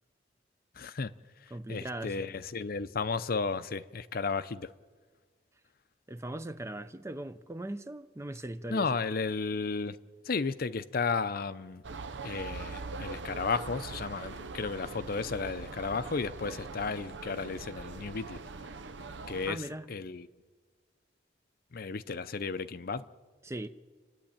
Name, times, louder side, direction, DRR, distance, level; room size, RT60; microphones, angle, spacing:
voice 1, 0.8-1.1 1.4-4.7 8.7-10.0 10.2-11.8 12.2-18.4 19.3-20.3 21.7-23.1, left 4 dB, 55° left, 0.6 m, -33 dB
voice 2, 1.5-2.3 6.1-9.0 19.5-19.9 23.4-23.7, right 1 dB, 15° right, 0.6 m, -39 dB
sound 1, 11.8-19.5, right 3 dB, 80° right, 0.8 m, -42 dB
29.5 x 11.0 x 8.8 m
head